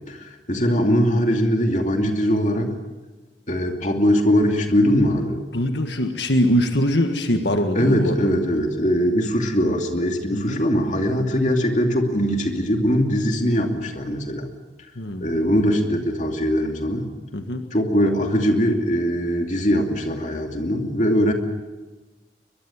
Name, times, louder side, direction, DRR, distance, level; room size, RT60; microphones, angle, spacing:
voice 1, 0.1-2.7 3.5-5.4 7.7-14.5 15.2-17.1 17.7-21.3, equal, 45° left, 3 dB, 2.7 m, -21 dB
voice 2, 5.5-8.3 10.3-10.6 14.9-15.5 17.3-17.6, equal, 80° left, 5 dB, 1.7 m, -23 dB
23.0 x 21.5 x 7.3 m, 1.2 s
head